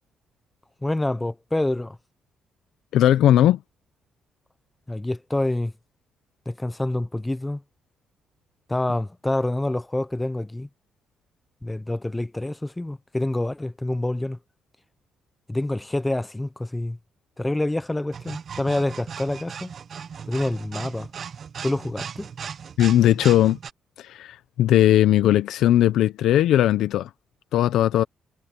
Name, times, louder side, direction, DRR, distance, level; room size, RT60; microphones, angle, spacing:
voice 1, 0.8-2.0 4.9-5.7 6.5-7.6 8.7-10.7 11.6-14.4 15.5-17.0 17.4-19.7 20.3-21.1 21.6-22.3, left 1 dB, 10° left, 1.1 m, -27 dB
voice 2, 2.9-3.6 22.8-23.6 24.0-27.1 27.5-28.0, left 12 dB, 80° left, 0.9 m, -18 dB
sound 1, 18.1-23.7, right 7 dB, 55° right, 1.6 m, -37 dB
cardioid pair, 90°, 0 cm